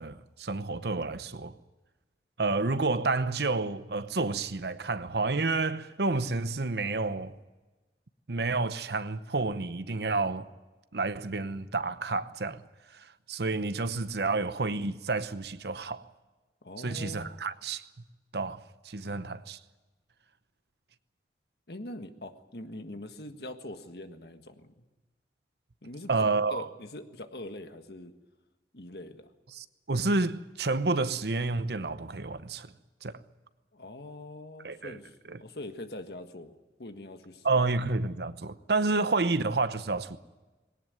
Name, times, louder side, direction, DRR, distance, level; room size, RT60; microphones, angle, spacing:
voice 1, 0.0-1.6 2.4-7.3 8.3-10.5 10.9-12.6 12.9-16.0 16.8-17.8 18.3-19.6 26.1-26.7 29.5-32.7 33.0-33.1 34.6-35.0 35.3-35.4 37.4-40.2, right 3 dB, 70° right, 0.9 m, -30 dB
voice 2, 16.6-17.3 19.0-19.2 21.7-24.7 25.8-28.1 28.7-29.3 33.7-37.5, left 1 dB, 65° left, 1.6 m, -43 dB
20.5 x 18.0 x 9.4 m
head